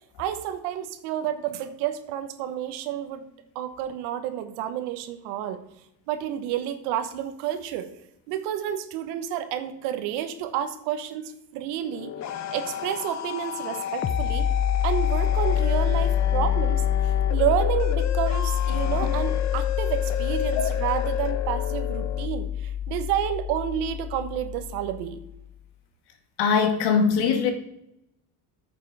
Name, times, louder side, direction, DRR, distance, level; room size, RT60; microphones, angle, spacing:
voice 1, 0.2-5.6 6.1-7.9 8.3-12.1 12.5-14.5 14.8-25.2, right 10 dB, 80° right, 10 dB, 1.3 m, -30 dB
sound 1, 11.8-22.3, left 9 dB, 40° left, 0.9 m, -32 dB
sound 2, 14.0-25.4, left 9 dB, 25° left, 0.5 m, -26 dB
voice 2, 26.4-27.5, left 6 dB, 70° left, 6 dB, 1.9 m, -21 dB
9.6 x 6.7 x 4.9 m, 0.82 s
supercardioid pair, 110°, 41 cm